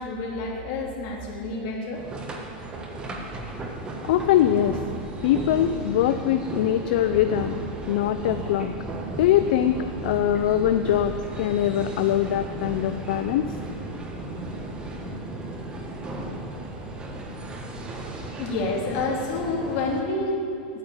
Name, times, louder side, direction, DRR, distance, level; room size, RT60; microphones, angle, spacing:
voice 1, 0.0-2.0 18.4-20.4, left 3 dB, 55° left, -1 dB, 2.9 m, -28 dB
sound 1, 1.9-20.0, right 2 dB, 15° right, 1.4 m, -35 dB
voice 2, 4.0-4.8 5.2-7.6 7.9-8.7 9.2-13.5, left 11 dB, 70° left, 9 dB, 0.5 m, -22 dB
9.7 x 9.2 x 9.1 m, 2.6 s
supercardioid pair, 150°, 5 cm